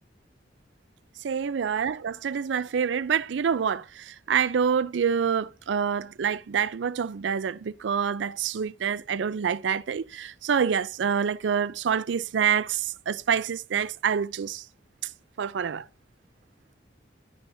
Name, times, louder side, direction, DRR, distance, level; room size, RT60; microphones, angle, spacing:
voice 1, 1.2-14.6 15.4-15.8, right 7 dB, 75° right, 0.4 m, -27 dB
11.0 x 6.9 x 2.7 m
head